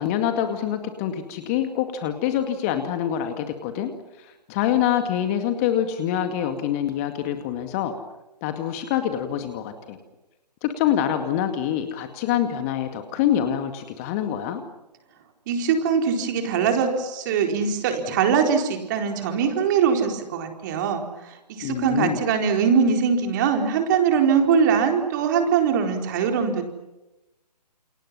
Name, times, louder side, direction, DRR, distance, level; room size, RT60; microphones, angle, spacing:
voice 1, 0.0-3.9 4.2-7.9 8.4-10.0 10.6-14.6 21.6-22.2, left 10 dB, 20° left, 7 dB, 2.1 m, -25 dB
voice 2, 15.5-26.6, right 6 dB, 30° right, 4 dB, 4.3 m, -22 dB
29.5 x 29.0 x 5.7 m, 0.99 s
figure-of-eight pair, 140°, 21 cm